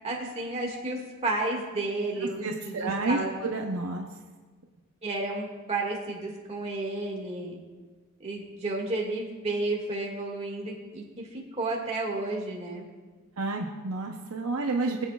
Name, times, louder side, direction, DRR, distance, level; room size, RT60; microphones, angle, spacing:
voice 1, 0.0-3.3 5.0-7.6 8.2-12.9, right 2 dB, 30° right, -1 dB, 1.9 m, -32 dB
voice 2, 2.4-4.1 13.4-15.1, right 3 dB, 70° right, 1 dB, 0.8 m, -30 dB
22.0 x 8.2 x 2.4 m, 1.4 s
head